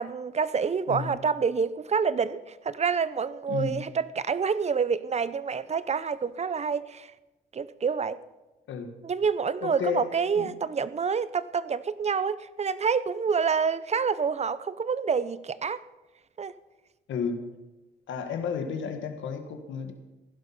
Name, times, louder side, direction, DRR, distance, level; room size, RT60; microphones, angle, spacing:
voice 1, 0.0-7.1 7.5-8.2 9.0-15.8 16.4-16.5, right 6 dB, 35° right, 16 dB, 0.7 m, -27 dB
voice 2, 3.5-3.8 8.7-8.9 9.6-10.5 17.1-17.4 18.1-19.9, left 6 dB, 70° left, 6 dB, 1.6 m, -32 dB
16.0 x 11.0 x 5.6 m, 1.1 s
cardioid pair, 90°, 20 cm